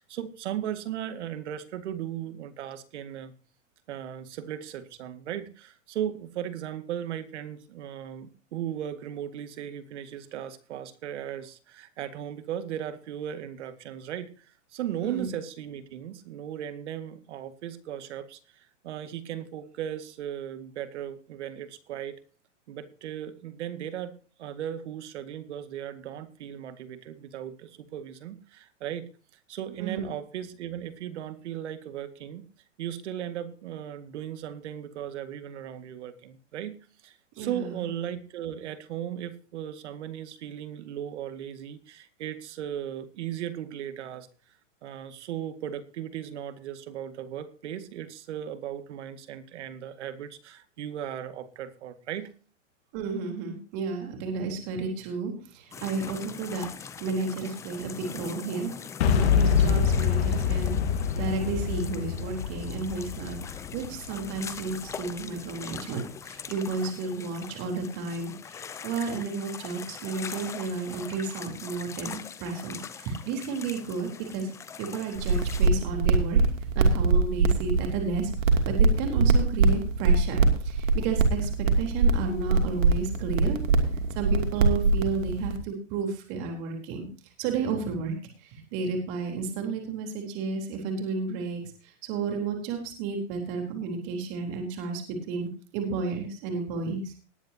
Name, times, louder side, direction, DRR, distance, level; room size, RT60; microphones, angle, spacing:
voice 1, 0.0-3.3 3.9-22.2 22.7-24.1 24.4-29.1 29.5-32.5 32.8-36.8 37.0-44.3 44.8-52.3, right 10 dB, 65° right, 11 dB, 2.0 m, -37 dB
voice 2, 29.8-30.1 37.4-37.8 52.9-56.7 57.0-58.7 59.1-60.8 61.2-74.5 74.8-76.4 76.7-78.3 78.7-81.5 81.8-83.6 84.1-87.1 87.4-88.1 88.4-91.6 92.0-95.0 95.3-95.5 95.7-97.1, right 4 dB, 40° right, 3 dB, 3.8 m, -32 dB
sound 1, 55.7-75.7, left 7 dB, 10° left, 0.5 m, -42 dB
Boom, 59.0-64.9, left 7 dB, 60° left, 1.8 m, -26 dB
sound 2, 75.2-85.6, right 3 dB, 90° right, 2.8 m, -23 dB
19.5 x 9.8 x 2.8 m, 0.37 s
hypercardioid pair, 145°, 38 cm